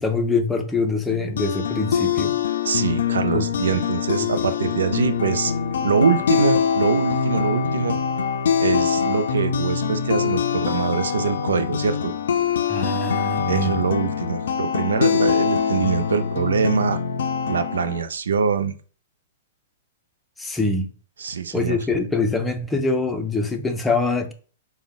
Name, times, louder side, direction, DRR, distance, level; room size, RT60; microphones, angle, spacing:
voice 1, 0.0-2.3 3.3-3.5 3.7-3.9 4.2-4.3 4.7-4.8 12.7-13.8 20.4-20.9 21.5-24.3, left 3 dB, 10° left, 0.5 m, -24 dB
sound 1, 1.1-18.0, left 7 dB, 70° left, 0.4 m, -23 dB
voice 2, 2.6-5.5 5.8-8.0 8.6-12.1 13.5-17.0 17.5-18.7 21.2-21.8, right 6 dB, 80° right, 0.4 m, -23 dB
5.0 x 2.1 x 2.3 m
hypercardioid pair, 125°, 0 cm